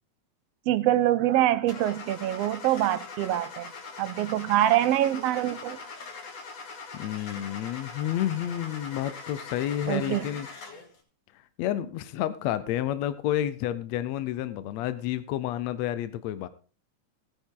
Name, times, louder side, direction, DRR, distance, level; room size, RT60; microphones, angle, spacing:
voice 1, 0.7-3.7 4.0-5.8 9.9-10.3, right 13 dB, 75° right, 1.5 m, -25 dB
Car / Engine starting, 1.7-11.0, left 4 dB, 60° left, 3.1 m, -42 dB
voice 2, 6.9-10.5 11.3-16.5, left 12 dB, 75° left, 1.8 m, -30 dB
16.5 x 10.0 x 3.7 m
omnidirectional pair, 3.5 m